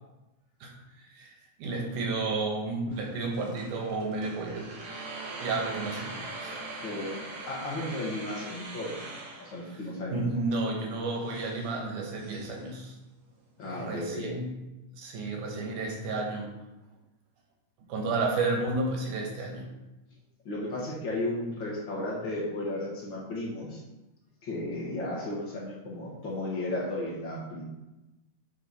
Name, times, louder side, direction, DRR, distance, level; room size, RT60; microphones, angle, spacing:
voice 1, 1.6-4.7 5.4-6.2 6.4-6.5 10.1-13.0 13.6-14.5 15.0-16.5 17.9-19.7, right 3 dB, 70° right, 1 dB, 2.2 m, -31 dB
sound 1, 2.9-14.0, right 2 dB, 90° right, 1.1 m, -43 dB
voice 2, 6.8-9.1 9.4-10.2 13.6-14.3 20.4-23.8 24.4-27.6, left 1 dB, 75° left, -5 dB, 1.1 m, -34 dB
9.8 x 3.9 x 4.1 m, 1.0 s
omnidirectional pair, 4.4 m